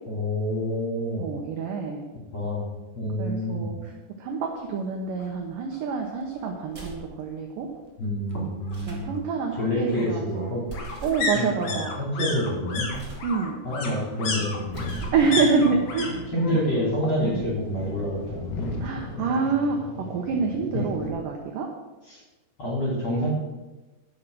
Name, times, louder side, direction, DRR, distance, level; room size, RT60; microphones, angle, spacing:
voice 1, 0.1-1.3 2.3-2.7 2.9-3.7 8.0-9.2 9.6-10.6 11.3-12.9 13.6-15.0 16.3-18.7 20.7-20.8 22.1-22.2 22.6-23.3, equal, 30° left, -5 dB, 3.4 m, -27 dB
voice 2, 1.2-2.1 3.2-3.9 4.2-7.7 8.9-10.7 11.0-11.9 13.2-13.6 15.1-16.6 17.2-17.4 18.8-21.7, right 5 dB, 75° right, 2 dB, 2.0 m, -27 dB
sound 1, 5.2-5.3 5.7-5.8 6.0-7.0 8.3-16.1 16.3-16.9 17.2-18.2 18.5-18.6, left 3 dB, 65° left, 1.5 m, -33 dB
sound 2, 6.7-7.1 8.6-9.1 10.7-11.3 12.8-13.3 14.6-15.3, right 2 dB, 20° right, 2.2 m, -39 dB
sound 3, 14.4-21.1, left 3 dB, 80° left, 3.3 m, -37 dB
11.0 x 6.3 x 6.2 m, 1.1 s
omnidirectional pair, 5.0 m